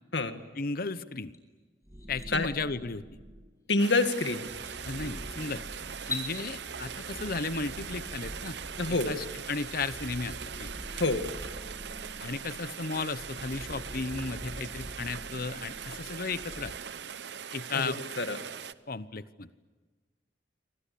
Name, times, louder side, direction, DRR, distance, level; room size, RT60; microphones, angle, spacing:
voice 1, 0.6-1.3 2.1-3.0 4.8-5.6 6.1-8.6 9.1-10.8 12.2-16.7 17.5-18.0 18.9-19.5, left 4 dB, 55° left, 14 dB, 1.0 m, -35 dB
sound 1, 1.3-1.4 1.8-2.3 3.9-4.0 4.5-4.8 5.9-6.3, left 3 dB, 20° left, 6.1 m, -38 dB
sound 2, 1.9-3.6 4.2-16.7, equal, 20° right, 2.0 m, -45 dB
voice 2, 3.7-4.5 8.8-9.2 10.9-11.3 17.7-18.4, left 3 dB, 80° left, 7 dB, 2.1 m, -27 dB
Rain, 3.8-18.7, right 7 dB, 70° right, 0.8 m, -41 dB
28.5 x 24.5 x 8.6 m, 1.3 s
head